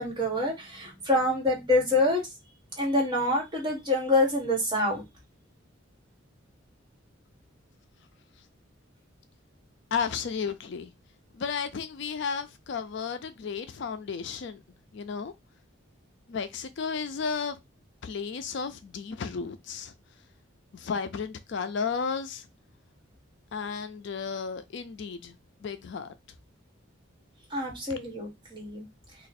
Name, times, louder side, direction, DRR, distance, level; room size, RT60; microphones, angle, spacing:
voice 1, 0.0-2.2 2.8-5.0 27.5-28.8, left 2 dB, 20° right, 1.5 m, -26 dB
voice 2, 9.9-10.9 11.4-14.6 14.9-15.3 16.3-17.6 18.0-19.9 20.7-22.4 23.5-25.3 25.6-26.1, left 5 dB, 55° left, 0.4 m, -33 dB
3.0 x 2.4 x 4.1 m
head